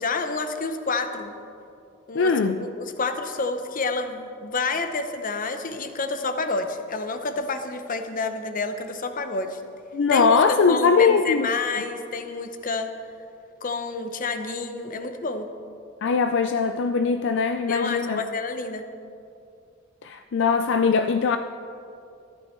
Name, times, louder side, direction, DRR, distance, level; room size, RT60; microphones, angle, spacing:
voice 1, 0.0-1.3 2.1-9.6 10.1-12.9 13.6-15.5 17.7-18.8, left 3 dB, 45° left, 8 dB, 0.8 m, -29 dB
voice 2, 2.1-2.6 9.9-11.5 16.0-18.2 20.0-21.4, left 5 dB, 65° left, 8 dB, 0.4 m, -21 dB
13.5 x 12.0 x 4.4 m, 2.6 s
head